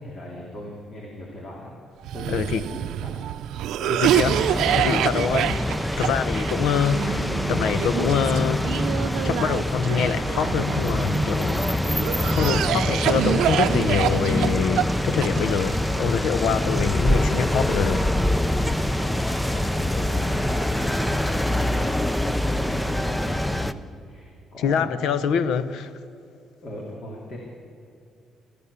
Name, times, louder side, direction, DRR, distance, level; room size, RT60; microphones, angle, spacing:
voice 1, 0.0-1.8 2.1-3.2 19.0-25.3 26.6-27.4, left 1 dB, 35° left, 3.1 m, -39 dB
Cough, 2.0-11.2 11.8-15.8, right 12 dB, 80° right, 0.6 m, -27 dB
voice 2, 2.3-2.6 3.8-5.6 6.0-8.8 9.2-12.0 12.2-18.0 24.6-25.9, left 7 dB, 75° left, 0.9 m, -25 dB
sound 1, 4.0-23.7, left 1 dB, 5° left, 0.5 m, -25 dB
27.5 x 14.0 x 7.0 m
cardioid pair, 160°, 0 cm